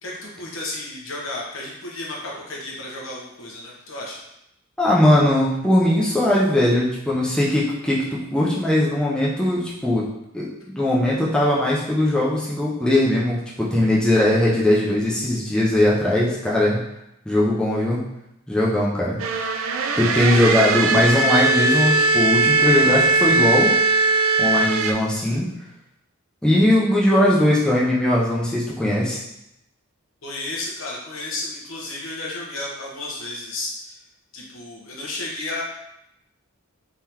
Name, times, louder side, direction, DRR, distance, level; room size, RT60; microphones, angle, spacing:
voice 1, 0.0-4.2 30.2-34.0 34.3-35.6, left 2 dB, 65° left, -3 dB, 1.0 m, -32 dB
voice 2, 4.8-10.1 10.3-16.8 17.3-18.1 18.5-19.2 20.0-23.7 24.4-25.5 26.4-29.2, left 1 dB, 5° left, -6 dB, 0.5 m, -20 dB
sound 1, 19.2-24.9, right 3 dB, 65° right, 0.4 m, -19 dB
3.7 x 3.4 x 2.9 m, 0.84 s
head